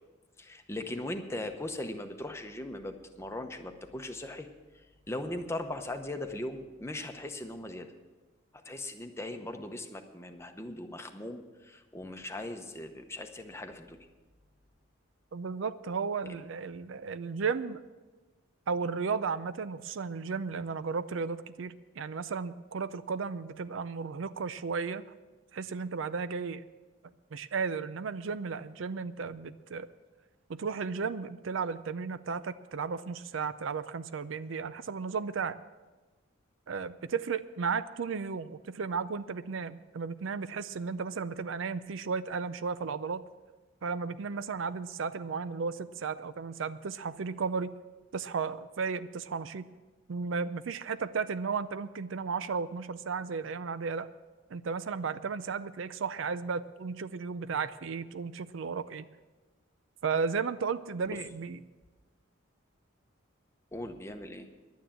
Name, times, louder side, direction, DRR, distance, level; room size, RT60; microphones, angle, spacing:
voice 1, 0.4-4.5 4.7-7.9 8.6-14.1 16.3-16.4 61.1-61.2 63.7-64.5, left 1 dB, 15° left, 6 dB, 0.8 m, -39 dB
voice 2, 15.3-17.8 18.7-25.0 25.5-26.6 27.3-29.9 30.5-35.6 36.7-43.2 43.8-47.7 48.1-49.7 50.1-54.1 54.5-59.1 60.0-61.6, right 5 dB, 70° right, 14 dB, 0.5 m, -34 dB
11.5 x 9.3 x 7.4 m, 1.2 s
head